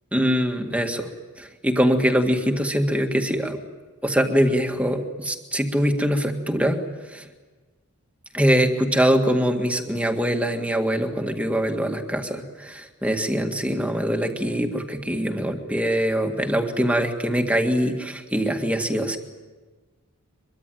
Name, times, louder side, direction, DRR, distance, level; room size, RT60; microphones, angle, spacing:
voice 1, 0.1-1.1 1.4-3.6 4.0-6.8 7.1-7.2 8.3-19.2, equal, 5° right, 4 dB, 1.9 m, -23 dB
24.0 x 23.0 x 9.2 m, 1.3 s
head